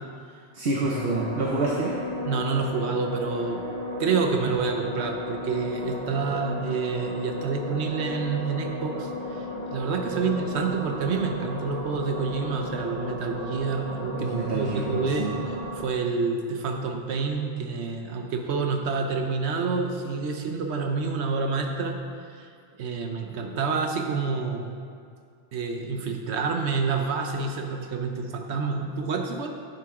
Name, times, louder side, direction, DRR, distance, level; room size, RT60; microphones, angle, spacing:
voice 1, 0.5-2.0 14.2-15.3, right 3 dB, 65° right, -1 dB, 1.0 m, -27 dB
sound 1, 0.8-15.9, left 1 dB, 15° left, 2.3 m, -34 dB
voice 2, 2.2-3.6 4.0-9.4 9.7-15.3 15.8-22.0 22.4-22.5 22.8-24.7 25.5-29.5, right 4 dB, 90° right, 4 dB, 1.1 m, -28 dB
9.1 x 7.5 x 3.7 m, 2.3 s
omnidirectional pair, 1.1 m